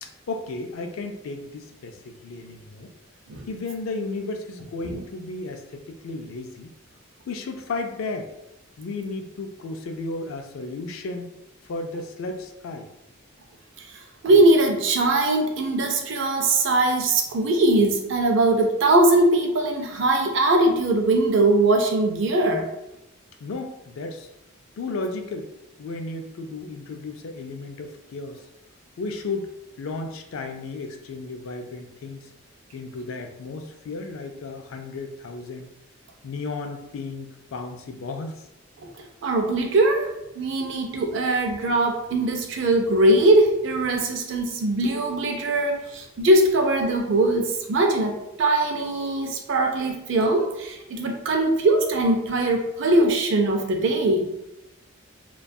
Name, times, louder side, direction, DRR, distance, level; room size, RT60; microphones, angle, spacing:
voice 1, 0.0-2.9 3.5-6.7 7.3-8.3 8.8-11.3 11.6-12.9 23.4-24.3 24.8-25.5 25.8-28.4 29.0-32.3 32.7-35.7 36.2-38.4, left 3 dB, 70° left, 5 dB, 0.3 m, -34 dB
voice 2, 14.2-22.6 38.8-54.3, right 2 dB, 60° right, 2 dB, 0.4 m, -21 dB
2.6 x 2.2 x 2.2 m, 0.87 s
head